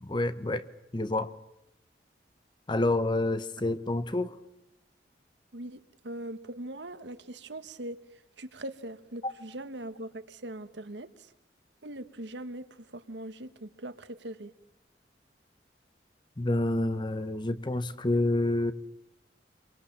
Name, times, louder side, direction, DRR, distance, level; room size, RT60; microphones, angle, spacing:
voice 1, 0.0-0.6 0.9-1.3 2.7-4.4 9.2-9.3 16.4-18.7, left 2 dB, 25° left, 0.9 m, -28 dB
voice 2, 5.5-11.3 11.8-14.5, right 1 dB, 75° right, 1.3 m, -41 dB
27.0 x 23.0 x 7.3 m
head